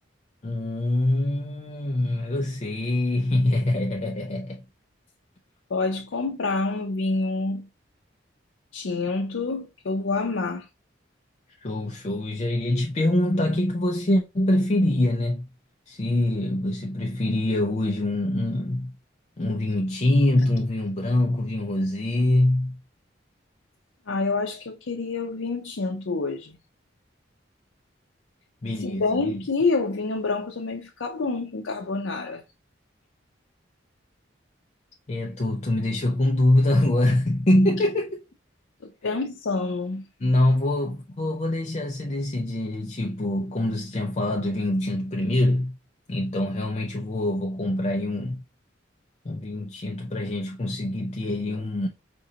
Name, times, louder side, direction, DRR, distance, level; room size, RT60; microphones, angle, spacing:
voice 1, 0.4-4.6 11.6-15.5 15.9-18.9 19.4-22.8 28.6-29.4 35.1-38.2 40.2-45.8 46.1-48.4 49.2-51.9, left 1 dB, 35° left, 0.5 m, -24 dB
voice 2, 5.7-7.7 8.7-10.7 24.1-26.6 28.8-32.4 38.8-40.0, left 3 dB, 90° left, 0.6 m, -27 dB
5.2 x 2.6 x 2.7 m
head